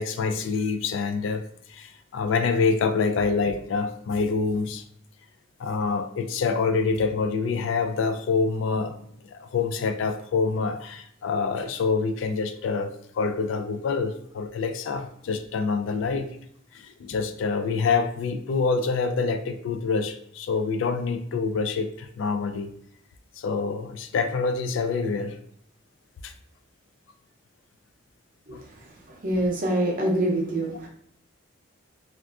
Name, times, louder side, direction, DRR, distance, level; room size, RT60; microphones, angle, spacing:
voice 1, 0.0-1.4 1.7-4.8 5.6-16.3 16.7-22.7 23.4-25.4 26.2-26.3 28.5-28.6, left 4 dB, 75° left, 8 dB, 0.3 m, -26 dB
voice 2, 29.2-30.9, right 1 dB, 45° right, -1 dB, 0.6 m, -25 dB
3.4 x 2.4 x 2.4 m, 0.66 s
head